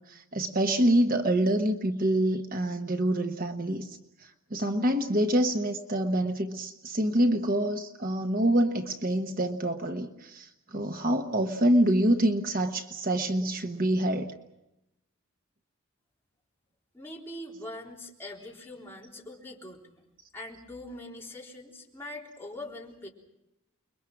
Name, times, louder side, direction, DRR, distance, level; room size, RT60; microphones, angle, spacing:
voice 1, 0.0-14.3, right 1 dB, 40° right, 5 dB, 1.2 m, -26 dB
voice 2, 16.9-19.9 20.3-23.1, left 1 dB, 10° left, -3 dB, 3.7 m, -42 dB
29.5 x 22.5 x 6.1 m, 0.89 s
head